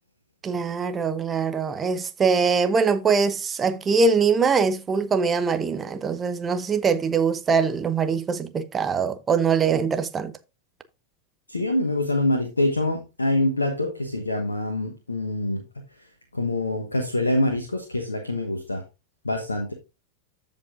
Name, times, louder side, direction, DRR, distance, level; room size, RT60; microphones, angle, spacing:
voice 1, 0.4-10.3, right 5 dB, 20° right, 0.9 m, -23 dB
voice 2, 11.5-15.6 16.3-18.8 19.2-19.7, left 1 dB, 80° left, 1.2 m, -25 dB
14.5 x 5.3 x 2.6 m
figure-of-eight pair, 90°, 0 cm